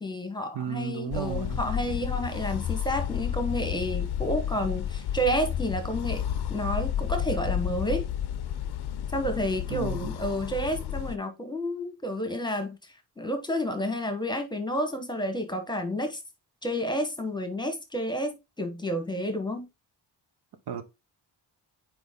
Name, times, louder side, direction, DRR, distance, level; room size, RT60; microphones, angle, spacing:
voice 1, 0.0-6.2 6.5-8.1 9.1-12.8 13.2-16.2 16.6-19.7, equal, 10° left, 1.1 m, -30 dB
voice 2, 0.5-1.6 9.7-10.1 20.7-20.8, right 8 dB, 65° right, 1.0 m, -33 dB
sound 1, 1.1-11.2, left 10 dB, 65° left, 0.6 m, -31 dB
6.1 x 4.8 x 3.5 m
wide cardioid pair, 160°, 43 cm